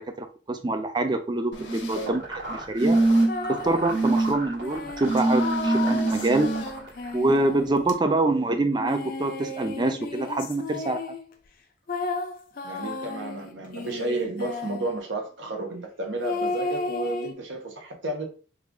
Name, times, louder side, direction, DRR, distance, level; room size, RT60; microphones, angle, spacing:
voice 1, 0.0-3.0 3.5-6.5 7.1-11.0, right 2 dB, 25° right, 0.4 m, -25 dB
sound 1, 1.5-2.1 2.8-3.5 3.9-4.3 5.0-6.6 7.9-8.0, right 2 dB, 80° left, 0.8 m, -23 dB
sound 2, 1.9-7.1, right 2 dB, 65° right, 1.6 m, -38 dB
sound 3, 3.2-3.9 4.6-7.9 8.7-11.3 11.9-15.0 16.2-17.3, left 3 dB, 50° left, 0.4 m, -33 dB
voice 2, 12.6-18.3, right 2 dB, 85° right, 0.9 m, -32 dB
3.0 x 2.3 x 3.7 m
head